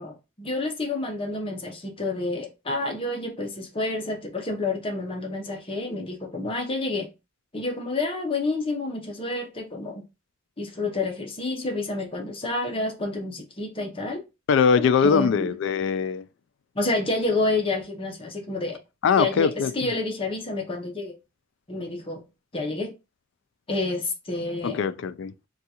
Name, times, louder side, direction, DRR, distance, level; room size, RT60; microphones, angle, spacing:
voice 1, 0.0-7.1 7.5-10.0 10.6-14.2 14.8-15.5 16.8-18.8 19.2-21.2 21.7-22.2 22.5-22.9 23.7-24.8, left 2 dB, 25° left, 0.7 m, -29 dB
voice 2, 14.5-16.2 19.0-19.9 24.6-25.3, left 6 dB, 60° left, 0.3 m, -22 dB
3.6 x 2.3 x 2.8 m
head